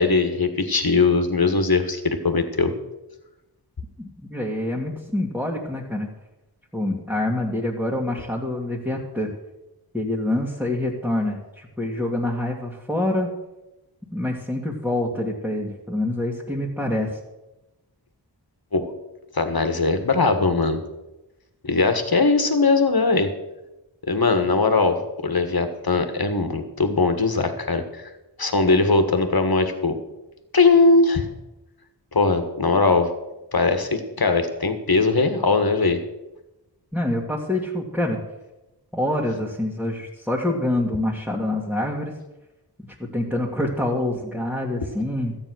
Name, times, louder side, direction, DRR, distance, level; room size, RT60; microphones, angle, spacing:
voice 1, 0.0-2.7 18.7-18.9 19.3-20.8 21.6-23.3 24.0-28.0 28.4-30.0 30.5-31.3 32.1-33.1 33.5-36.0, left 3 dB, 60° left, 8 dB, 1.6 m, -20 dB
voice 2, 4.0-6.1 6.7-9.3 9.9-13.3 14.1-17.2 36.9-38.2 38.9-42.1 43.0-45.4, left 1 dB, 5° right, -4 dB, 2.2 m, -26 dB
13.5 x 8.8 x 6.3 m, 0.99 s
wide cardioid pair, 45°, 42 cm